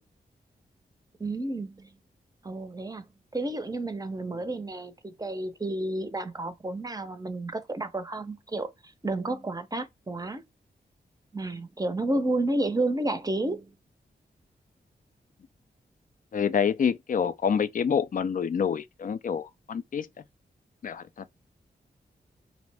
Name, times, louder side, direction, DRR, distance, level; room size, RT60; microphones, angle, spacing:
voice 1, 1.2-2.0 2.4-3.1 3.3-10.4 11.3-13.7, right 2 dB, 20° right, 0.6 m, -31 dB
voice 2, 16.3-20.1 20.8-21.0, left 7 dB, 50° left, 0.4 m, -27 dB
2.5 x 2.0 x 3.3 m
cardioid pair, 45°, 18 cm